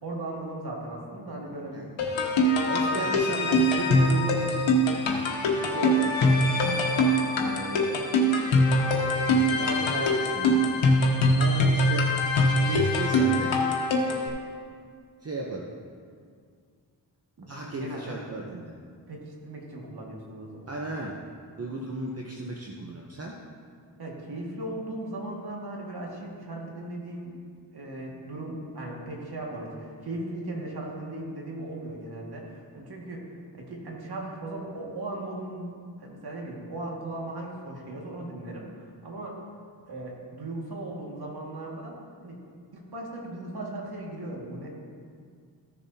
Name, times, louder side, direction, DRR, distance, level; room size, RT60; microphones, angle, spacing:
voice 1, 0.0-1.9 2.8-3.2 17.6-18.2 19.1-20.7 24.0-27.4 27.7-39.4 39.9-41.9 42.2-42.4 42.7-44.7, right 2 dB, 60° right, -2 dB, 2.1 m, -37 dB
voice 2, 1.4-1.9 2.7-4.7 5.6-6.1 7.3-8.1 9.6-10.6 11.4-12.2 12.6-13.6 15.2-15.7 17.4-18.8 20.7-21.2 21.6-23.4, right 2 dB, 35° right, -2 dB, 0.9 m, -35 dB
sound 1, 2.0-14.3, left 1 dB, 85° left, 1.1 m, -23 dB
14.5 x 6.9 x 2.8 m, 2.1 s
cardioid pair, 60°, 44 cm